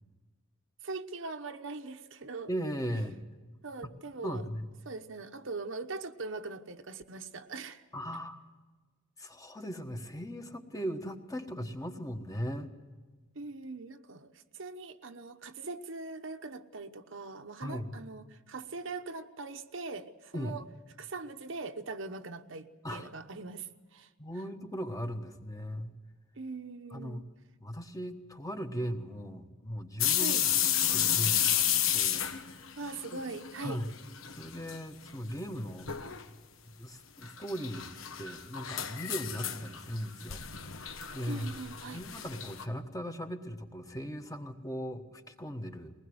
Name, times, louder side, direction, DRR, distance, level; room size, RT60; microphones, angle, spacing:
voice 1, 0.8-2.5 3.6-4.4 4.9-7.8 13.3-20.6 21.0-24.1 26.3-27.2 30.2-30.4 32.8-33.8 41.3-42.0, right 3 dB, 70° right, 7 dB, 1.1 m, -41 dB
voice 2, 2.5-3.2 3.8-3.9 4.2-4.7 7.9-8.4 9.2-12.7 17.6-18.0 20.3-20.5 22.8-23.1 24.2-25.9 26.9-27.2 27.6-30.7 30.9-31.6 31.9-32.7 33.1-33.2 33.6-33.9 34.3-36.4 36.8-37.9 38.2-40.4 41.1-41.5 41.9-45.9, equal, 15° left, 5 dB, 1.3 m, -38 dB
sound 1, 30.0-33.8 34.1-34.8 35.1-35.2 35.9-36.2 37.2-42.6, left 10 dB, 80° left, 1.2 m, -31 dB
22.0 x 19.5 x 8.0 m, 1.3 s
head